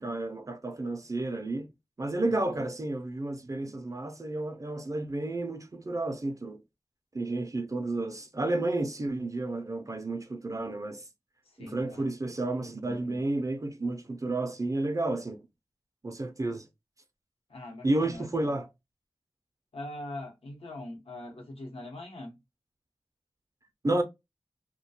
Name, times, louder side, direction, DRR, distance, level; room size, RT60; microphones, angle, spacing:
voice 1, 0.0-1.7 2.0-6.6 7.1-11.0 11.6-15.4 16.0-16.6 17.8-18.7 23.8-24.0, right 2 dB, 35° right, 0.4 m, -31 dB
voice 2, 2.3-2.6 11.4-12.1 17.5-18.5 19.7-22.4, left 1 dB, 70° left, 0.8 m, -42 dB
2.3 x 2.1 x 2.7 m
wide cardioid pair, 75°, 10 cm